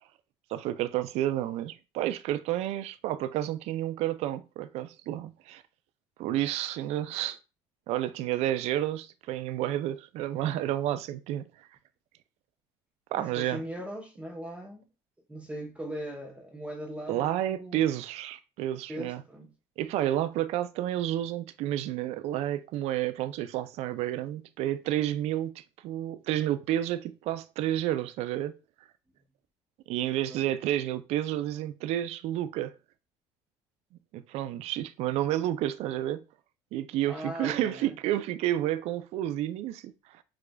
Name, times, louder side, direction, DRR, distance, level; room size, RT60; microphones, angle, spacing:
voice 1, 0.5-5.6 6.2-7.4 7.9-11.4 13.1-13.6 17.1-19.2 19.8-28.6 29.9-32.7 34.1-36.2 36.7-40.2, right 13 dB, 65° right, 0.4 m, -30 dB
voice 2, 13.1-14.9 15.3-17.9 18.9-19.5 30.3-30.5 37.0-38.0, equal, 10° right, 0.8 m, -39 dB
4.9 x 2.4 x 2.2 m
cardioid pair, 110°, 12 cm